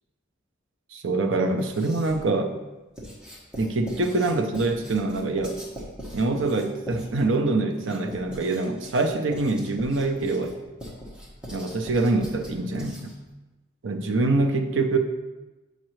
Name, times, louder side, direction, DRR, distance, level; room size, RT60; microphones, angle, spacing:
voice 1, 0.9-2.5 3.6-5.6 6.1-10.5 11.5-13.2 13.8-15.0, right 2 dB, 75° right, 5 dB, 0.6 m, -25 dB
Writing, 1.6-2.3 3.0-13.3, equal, 5° right, 1.2 m, -41 dB
7.4 x 5.2 x 3.1 m, 1.1 s
head